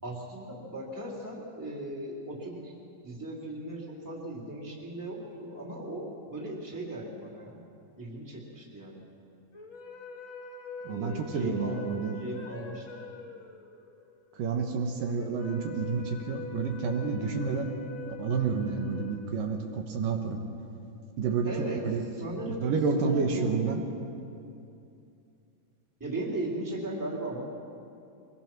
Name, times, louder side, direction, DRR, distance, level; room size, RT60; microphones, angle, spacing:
voice 1, 0.0-2.7 3.0-7.6 8.0-9.0 10.8-11.8 12.2-13.0 21.4-21.9 22.1-23.6 26.0-27.4, right 1 dB, 5° right, -3 dB, 2.8 m, -37 dB
sound 1, 9.5-19.9, left 3 dB, 40° left, 2.3 m, -44 dB
voice 2, 10.8-12.2 14.4-17.7 18.2-20.5 21.2-21.5 21.8-22.1 22.5-24.1, right 5 dB, 70° right, 3 dB, 2.9 m, -29 dB
25.0 x 20.5 x 6.1 m, 2.6 s
omnidirectional pair, 4.1 m